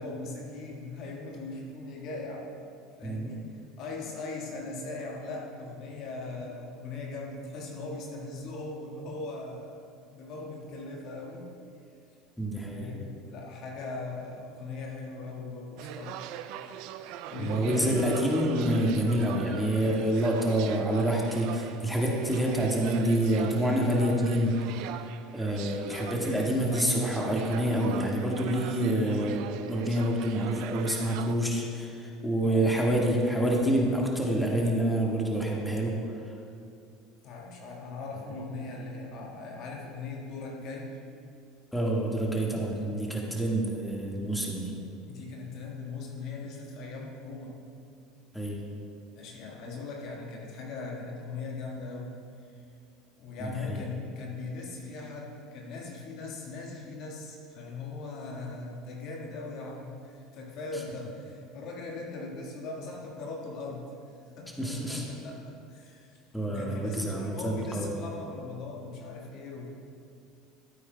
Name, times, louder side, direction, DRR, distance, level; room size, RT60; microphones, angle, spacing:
voice 1, 0.0-2.5 3.0-11.6 12.7-16.2 16.6-16.7 17.3-18.1 32.4-32.7 37.2-41.0 45.1-47.6 49.1-52.2 53.2-63.9 64.4-66.2 66.5-69.7, left 3 dB, 55° left, -1 dB, 1.6 m, -39 dB
voice 2, 12.4-12.9 17.4-25.0 25.3-29.4 29.7-35.9 41.7-44.7 48.3-48.6 53.4-53.8 64.6-65.0 66.3-67.9, right 1 dB, 5° left, -2 dB, 1.6 m, -27 dB
sound 1, 15.8-31.3, right 10 dB, 65° right, 0.4 m, -41 dB
13.5 x 8.8 x 2.2 m, 2.5 s
hypercardioid pair, 75°, 0 cm